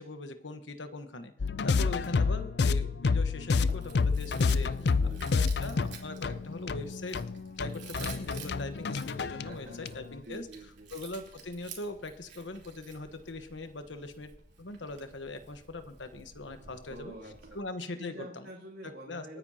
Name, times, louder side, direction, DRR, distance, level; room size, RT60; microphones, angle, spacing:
voice 1, 0.0-1.3 1.6-4.7 5.3-7.2 7.6-10.5 10.9-14.3 14.6-17.1 17.5-18.5 18.8-19.4, left 2 dB, 85° left, 8 dB, 1.2 m, -41 dB
sound 1, 1.4-10.1, left 4 dB, 60° left, 0.4 m, -29 dB
Chewing mastication, 3.5-17.6, right 6 dB, 75° right, 3.0 m, -51 dB
voice 2, 4.6-5.6 9.4-10.9 16.9-17.6 18.0-19.4, right 1 dB, 55° right, -1 dB, 1.8 m, -48 dB
27.5 x 9.7 x 2.8 m, 0.79 s
head